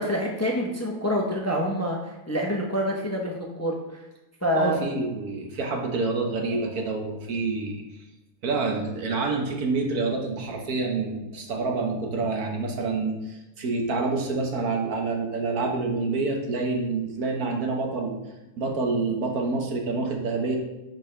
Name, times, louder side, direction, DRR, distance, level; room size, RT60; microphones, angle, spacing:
voice 1, 0.0-2.0 2.3-4.0 4.4-4.8, equal, 15° left, -1 dB, 0.6 m, -26 dB
voice 2, 4.5-7.8 8.4-18.2 18.6-20.6, right 3 dB, 85° right, 1 dB, 1.6 m, -27 dB
10.5 x 4.1 x 3.3 m, 1.0 s
omnidirectional pair, 1.5 m